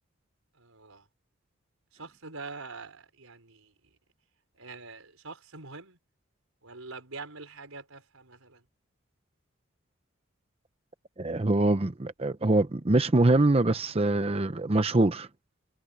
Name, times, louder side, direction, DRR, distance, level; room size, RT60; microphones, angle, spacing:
voice 1, 0.5-1.1 1.9-3.7 4.5-6.0 6.6-8.6, right 3 dB, 90° right, 5.0 m, -44 dB
voice 2, 11.2-15.3, right 2 dB, 30° right, 0.7 m, -24 dB
head